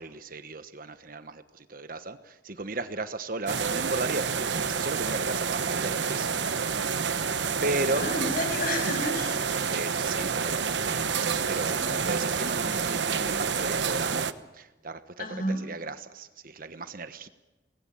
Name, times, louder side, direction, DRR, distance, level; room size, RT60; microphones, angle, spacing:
voice 1, 0.0-6.4 7.6-8.1 9.7-11.1 11.5-14.3 14.5-17.3, right 2 dB, 50° right, 11 dB, 1.2 m, -35 dB
sound 1, 3.5-14.3, right 6 dB, 75° right, 1.0 m, -28 dB
voice 2, 8.0-9.4 11.6-11.9 15.2-15.6, left 1 dB, 55° left, 5 dB, 6.9 m, -31 dB
24.5 x 20.0 x 8.9 m, 1.1 s
head